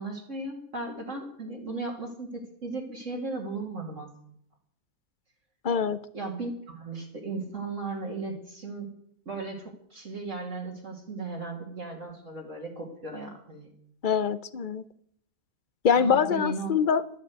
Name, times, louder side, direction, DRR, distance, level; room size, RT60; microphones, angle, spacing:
voice 1, 0.0-4.1 6.1-8.9 9.3-9.6 9.9-13.7 16.0-16.7, right 3 dB, 55° right, -1 dB, 2.6 m, -36 dB
voice 2, 5.6-6.0 14.0-14.8 15.8-17.0, left 7 dB, 50° left, 16 dB, 0.6 m, -24 dB
12.0 x 11.0 x 8.1 m, 0.66 s
omnidirectional pair, 1.6 m